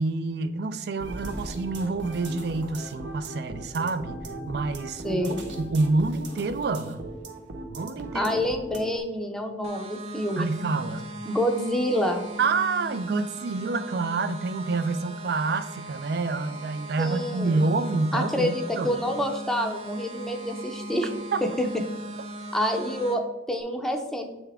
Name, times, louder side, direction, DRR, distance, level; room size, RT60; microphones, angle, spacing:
voice 1, 0.0-4.2 4.5-7.0 7.7-8.3 10.4-11.0 12.4-19.0 21.3-21.4, right 3 dB, 60° right, 12 dB, 0.4 m, -27 dB
sound 1, 1.0-9.0, right 2 dB, 80° right, 1.0 m, -38 dB
voice 2, 5.0-5.4 8.1-10.5 11.3-12.3 17.0-17.6 18.1-21.1 21.4-21.8 22.5-24.3, equal, ahead, 3 dB, 0.6 m, -27 dB
sound 2, 9.6-23.1, right 1 dB, 35° right, 0.9 m, -39 dB
8.2 x 3.5 x 3.4 m, 1.1 s
head